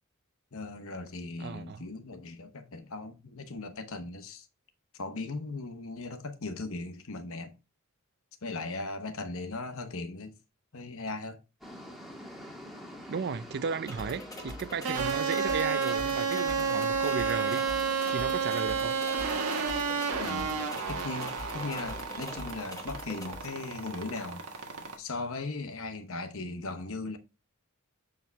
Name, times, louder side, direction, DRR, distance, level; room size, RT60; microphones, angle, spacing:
voice 1, 0.5-4.5 4.9-7.5 8.4-10.3 10.7-11.4 15.0-15.2 20.2-24.4 25.0-27.2, left 3 dB, 65° left, 1.1 m, -38 dB
voice 2, 1.4-1.9 13.1-19.0, right 5 dB, 50° right, 0.4 m, -35 dB
sound 1, 11.6-22.4, equal, ahead, 1.5 m, -48 dB
sound 2, 13.9-23.5, left 1 dB, 15° left, 1.2 m, -44 dB
sound 3, 14.8-25.0, right 5 dB, 85° right, 1.5 m, -31 dB
7.3 x 4.8 x 3.5 m
head